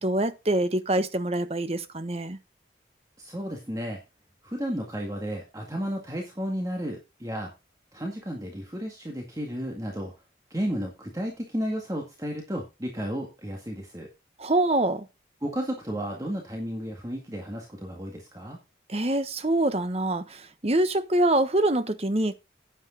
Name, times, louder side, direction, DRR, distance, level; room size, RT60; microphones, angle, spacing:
voice 1, 0.0-2.4 14.4-15.1 18.9-22.4, right 1 dB, 35° right, 1.1 m, -25 dB
voice 2, 3.2-4.0 4.4-7.5 7.9-10.1 10.5-14.1 15.4-18.6, equal, 20° right, 2.0 m, -33 dB
10.0 x 9.0 x 4.0 m
head